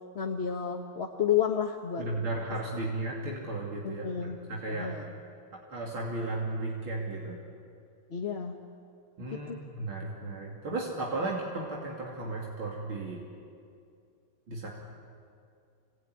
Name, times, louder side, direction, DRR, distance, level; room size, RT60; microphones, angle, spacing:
voice 1, 0.1-2.0 3.8-4.4 4.7-5.1 8.1-8.6 9.3-9.6, left 8 dB, 35° left, 1 dB, 1.2 m, -31 dB
voice 2, 2.0-4.9 5.5-7.4 9.2-13.2 14.5-14.7, right 2 dB, 80° right, -3 dB, 3.5 m, -35 dB
26.5 x 19.5 x 9.9 m, 2.4 s
omnidirectional pair, 2.2 m